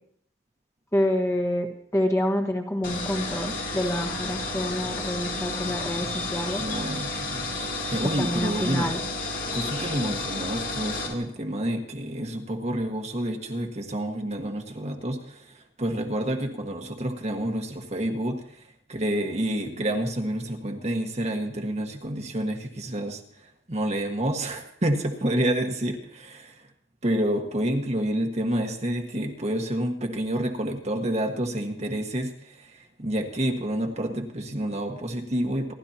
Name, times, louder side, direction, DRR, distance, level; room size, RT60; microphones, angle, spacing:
voice 1, 0.9-1.7 1.9-6.6 8.2-9.0, left 1 dB, 15° left, 1 dB, 1.5 m, -27 dB
sound 1, 2.8-11.1, left 2 dB, 50° left, 2.0 m, -31 dB
voice 2, 6.6-7.5 7.9-8.9 9.5-26.6 27.0-35.7, right 1 dB, 40° right, 3 dB, 1.6 m, -29 dB
28.0 x 12.0 x 2.9 m, 0.64 s
head